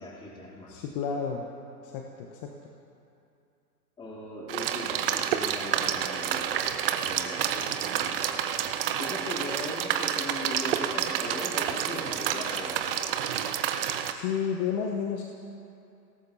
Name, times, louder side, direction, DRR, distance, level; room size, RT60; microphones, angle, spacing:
voice 1, 0.0-0.8 4.0-8.5 9.0-13.0, left 1 dB, 10° left, -3 dB, 2.0 m, -39 dB
voice 2, 0.7-1.4 1.8-2.5 14.1-15.2, left 7 dB, 25° left, 2 dB, 0.9 m, -31 dB
sound 1, 4.5-14.1, right 9 dB, 35° right, 0.8 m, -29 dB
28.5 x 18.0 x 2.7 m, 2.6 s
figure-of-eight pair, 120°, 49 cm